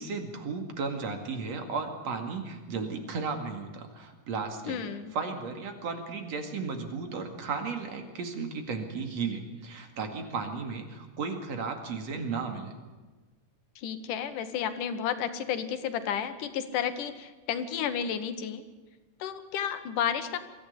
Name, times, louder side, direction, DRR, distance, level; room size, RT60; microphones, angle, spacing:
voice 1, 0.0-4.8 5.1-12.7, right 4 dB, 60° right, 5 dB, 3.2 m, -34 dB
voice 2, 4.7-5.1 13.8-18.6 19.2-20.4, left 8 dB, 80° left, 9 dB, 2.8 m, -32 dB
23.0 x 14.5 x 8.4 m, 1.3 s
omnidirectional pair, 3.6 m